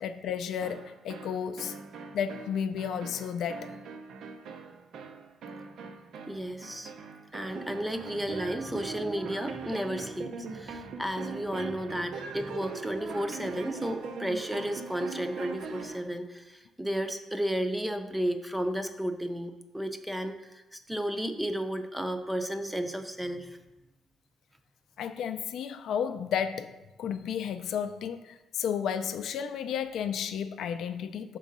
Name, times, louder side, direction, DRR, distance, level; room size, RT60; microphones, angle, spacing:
voice 1, 0.0-1.8 2.1-3.7 25.0-26.7 27.0-31.4, left 8 dB, 75° left, 0.4 m, -32 dB
sound 1, 0.6-16.1, right 5 dB, 75° right, 0.5 m, -41 dB
voice 2, 6.3-6.9 7.3-23.6, equal, 5° right, 0.5 m, -33 dB
6.1 x 3.8 x 5.3 m
cardioid pair, 120°, 0 cm